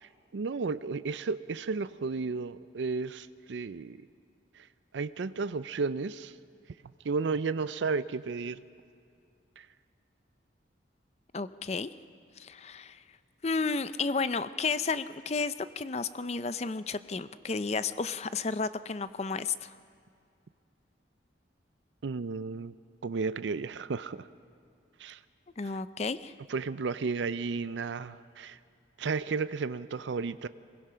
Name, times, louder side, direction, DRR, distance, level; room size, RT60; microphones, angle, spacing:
voice 1, 0.0-4.0 4.9-6.3 7.0-8.6 9.6-9.7 22.0-22.7 23.0-24.3 25.0-25.2 26.5-28.6 29.0-30.5, right 4 dB, 75° right, 14 dB, 0.5 m, -33 dB
voice 2, 11.3-11.9 12.4-13.0 13.4-19.7 25.6-26.3, left 4 dB, 35° left, 14 dB, 0.5 m, -32 dB
23.5 x 21.0 x 5.7 m, 2.4 s
head